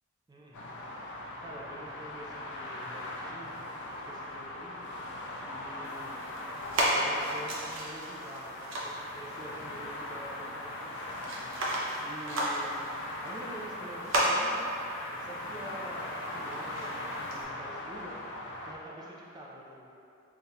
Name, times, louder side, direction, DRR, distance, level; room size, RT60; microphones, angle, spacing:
voice 1, 0.3-0.8 1.4-3.6 3.8-4.7 5.3-6.1 6.7-11.1 11.9-12.9 13.2-14.6 15.1-18.2 18.6-19.9, right 1 dB, 20° right, -5 dB, 0.4 m, -47 dB
sound 1, 0.5-18.7, left 1 dB, 55° left, 0.4 m, -40 dB
sound 2, 5.8-17.4, right 1 dB, 60° right, 0.6 m, -35 dB
5.7 x 2.3 x 2.7 m, 2.7 s
head